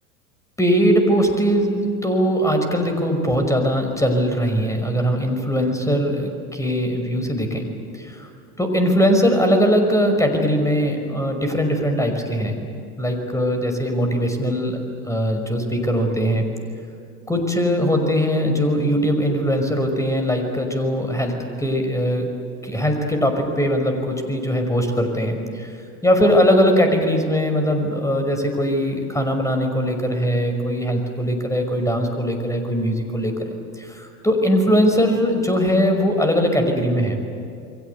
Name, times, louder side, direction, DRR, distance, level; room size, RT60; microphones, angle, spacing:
voice 1, 0.6-7.7 8.0-8.3 8.6-12.6 13.0-14.8 15.1-16.5 17.3-22.2 22.6-25.7 26.0-33.3 33.8-37.2, equal, 5° left, 5 dB, 5.7 m, -20 dB
29.0 x 23.0 x 8.3 m, 2.6 s
figure-of-eight pair, 80°, 46 cm